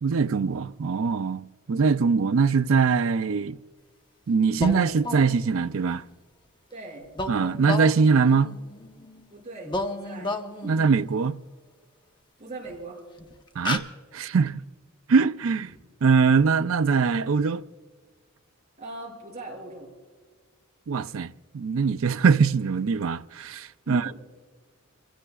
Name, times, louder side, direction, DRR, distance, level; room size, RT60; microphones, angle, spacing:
voice 1, 0.0-3.6 4.3-6.0 7.3-8.5 10.6-11.4 13.6-13.8 14.1-14.6 15.1-15.7 16.0-17.6 20.9-21.3 21.5-24.1, right 5 dB, 70° right, 0.4 m, -22 dB
sound 1, 4.6-5.7 7.1-9.2 9.6-11.1 12.6-12.7 13.2-13.3 13.6-13.8, left 2 dB, 20° left, 0.9 m, -33 dB
voice 2, 6.7-7.1 9.3-10.8 12.4-13.0 15.7-15.8 18.8-19.9 23.9-24.1, right 2 dB, 30° right, 6.0 m, -40 dB
28.5 x 16.5 x 2.4 m
head